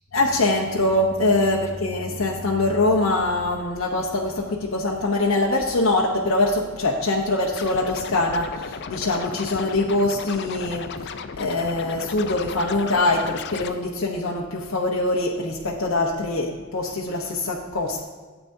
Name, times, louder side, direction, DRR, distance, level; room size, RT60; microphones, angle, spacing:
voice 1, 0.1-18.0, left 2 dB, 75° left, -2 dB, 0.9 m, -23 dB
Scratching (performance technique), 7.5-13.7, left 6 dB, 55° left, 0.5 m, -35 dB
13.0 x 8.0 x 2.7 m, 1.4 s
head